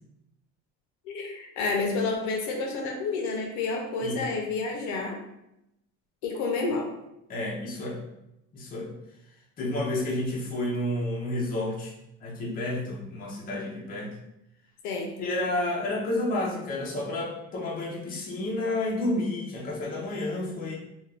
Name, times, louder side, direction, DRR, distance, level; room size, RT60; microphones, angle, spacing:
voice 1, 1.1-5.1 6.2-6.9 14.8-15.3, left 3 dB, 70° left, 1 dB, 0.7 m, -29 dB
voice 2, 7.3-8.0 8.5-8.9 9.6-11.9 12.2-14.1 15.2-20.7, left 1 dB, 30° left, -3 dB, 0.7 m, -30 dB
2.5 x 2.4 x 3.2 m, 0.85 s
cardioid pair, 150°, 30 cm